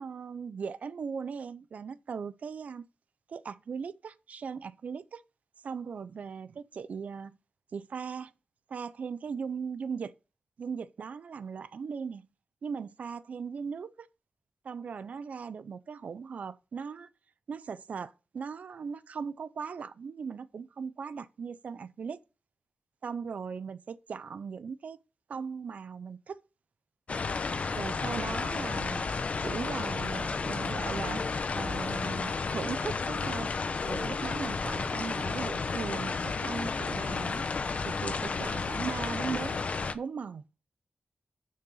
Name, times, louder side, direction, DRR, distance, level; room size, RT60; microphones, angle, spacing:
voice 1, 0.0-2.8 3.3-5.2 5.6-7.3 7.7-8.3 8.7-10.1 10.6-12.3 12.6-14.1 14.6-17.1 17.5-22.2 23.0-25.0 25.3-26.4 27.7-29.0 29.4-31.3 31.5-33.5 33.8-37.4 37.8-39.6 39.9-40.4, right 6 dB, 85° right, 0.6 m, -38 dB
sound 1, 27.1-39.9, left 4 dB, 65° left, 0.8 m, -32 dB
6.7 x 6.5 x 7.0 m
cardioid pair, 60°, 2 cm